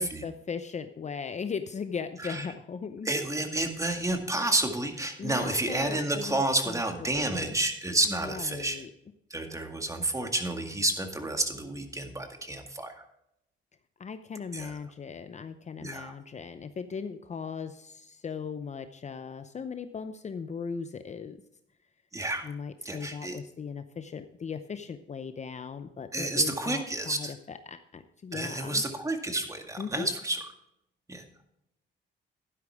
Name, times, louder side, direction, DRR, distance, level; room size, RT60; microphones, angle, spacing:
voice 1, 0.0-3.1 5.2-6.8 7.1-7.5 8.1-8.9 14.0-21.4 22.4-28.8 29.8-30.1, left 6 dB, 35° left, 9 dB, 0.7 m, -38 dB
voice 2, 3.0-8.8 9.3-13.0 14.5-14.7 15.8-16.1 22.1-22.5 22.8-23.4 26.1-27.3 28.3-30.4 31.1-31.2, right 2 dB, 15° right, 5 dB, 2.0 m, -30 dB
12.0 x 10.5 x 3.6 m, 0.80 s
cardioid pair, 90°, 20 cm